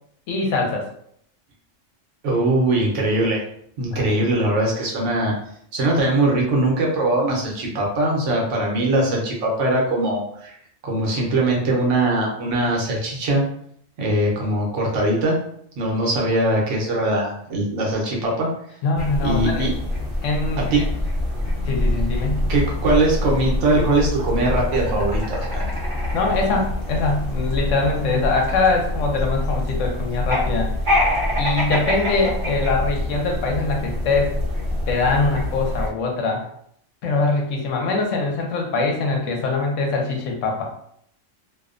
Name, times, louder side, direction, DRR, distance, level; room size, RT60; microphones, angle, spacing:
voice 1, 0.3-0.9 3.9-4.0 18.8-19.7 20.2-20.9 21.7-22.5 26.1-30.7 31.4-34.4 34.9-36.4 37.0-40.7, left 3 dB, 80° left, 1 dB, 1.0 m, -23 dB
voice 2, 2.2-3.4 3.8-5.3 5.7-10.5 10.8-13.4 14.0-15.4 15.8-18.5 19.2-19.7 20.7-20.8 22.5-25.7, right 2 dB, 75° right, -2 dB, 1.0 m, -21 dB
sound 1, 18.9-35.9, left 1 dB, 45° right, 1.0 m, -25 dB
2.6 x 2.1 x 2.4 m, 0.67 s
omnidirectional pair, 1.3 m